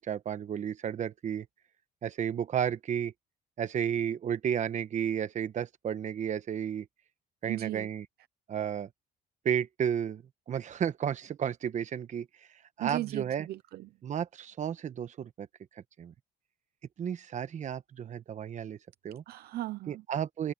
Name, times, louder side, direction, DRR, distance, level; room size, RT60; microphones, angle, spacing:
voice 1, 0.0-1.5 2.0-3.1 3.6-6.9 7.4-8.0 8.5-8.9 9.4-12.3 12.8-13.5 14.0-15.5 16.0-16.1 17.0-18.8 19.0-19.2 19.9-20.5, right 8 dB, 45° right, 1.3 m, -32 dB
voice 2, 7.5-7.9 12.8-13.9 19.3-20.0, right 16 dB, 70° right, 0.7 m, -36 dB
cardioid pair, 110°, 17 cm